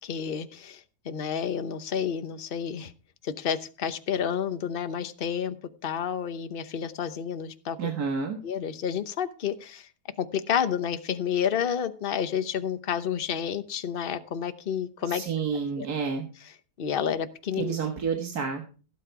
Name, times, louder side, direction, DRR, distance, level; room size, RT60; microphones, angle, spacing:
voice 1, 0.0-2.9 3.2-5.6 5.8-7.9 8.4-9.9 10.2-15.2 15.8-15.9 16.8-17.8, left 8 dB, 40° left, 11 dB, 1.0 m, -30 dB
voice 2, 7.8-8.4 15.1-16.3 17.6-18.7, right 6 dB, 70° right, 3 dB, 2.1 m, -29 dB
16.5 x 8.6 x 4.7 m, 0.36 s
omnidirectional pair, 1.7 m